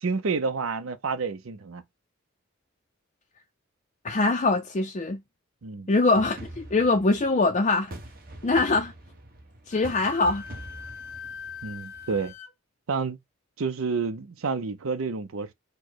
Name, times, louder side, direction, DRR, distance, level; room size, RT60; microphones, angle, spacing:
voice 1, 0.0-1.8 5.6-5.9 11.6-12.3 12.9-13.2 13.6-15.5, right 4 dB, 80° right, 0.6 m, -29 dB
voice 2, 4.0-5.2 5.9-7.9 8.4-8.9 9.7-10.4, left 3 dB, 35° left, 0.5 m, -23 dB
sound 1, 6.1-12.3, right 1 dB, 45° right, 1.2 m, -44 dB
Wind instrument woodwind instrument, 9.7-12.5, left 7 dB, 65° left, 0.7 m, -42 dB
4.5 x 2.2 x 4.5 m
head